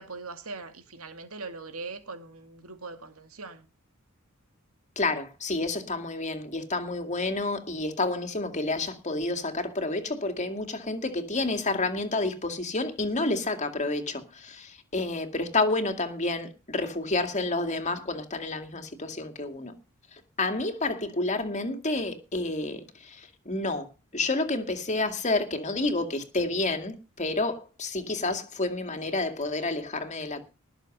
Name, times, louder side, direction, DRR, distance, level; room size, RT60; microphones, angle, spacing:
voice 1, 0.0-3.7, right 3 dB, 75° right, 2.3 m, -41 dB
voice 2, 5.0-19.7 20.4-23.9 24.1-30.4, left 2 dB, 35° left, 2.3 m, -29 dB
19.5 x 7.0 x 5.5 m
head